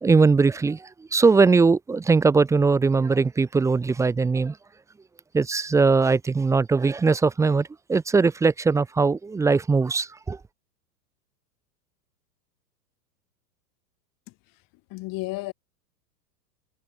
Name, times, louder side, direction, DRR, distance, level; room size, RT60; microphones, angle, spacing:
voice 1, 0.0-4.6 5.3-10.4, right 4 dB, 5° right, 0.6 m, -20 dB
voice 2, 14.9-15.5, left 22 dB, 45° left, 7.8 m, -31 dB
hypercardioid pair, 120°, 48 cm